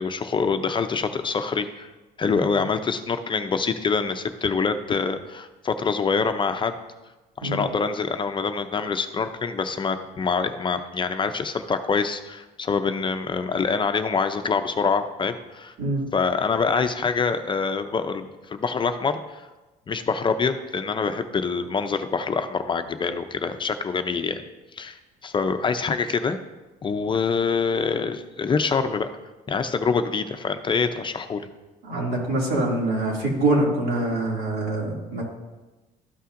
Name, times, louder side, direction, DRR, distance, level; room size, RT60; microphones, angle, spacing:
voice 1, 0.0-1.9 2.2-6.8 7.4-15.7 16.1-19.4 19.9-24.4 24.7-26.4 26.8-29.1 29.5-31.5, left 5 dB, 30° left, 8 dB, 0.4 m, -25 dB
voice 2, 31.8-35.2, right 2 dB, 70° right, -3 dB, 2.4 m, -24 dB
13.0 x 5.6 x 2.5 m, 1.1 s
cardioid pair, 110°, 17 cm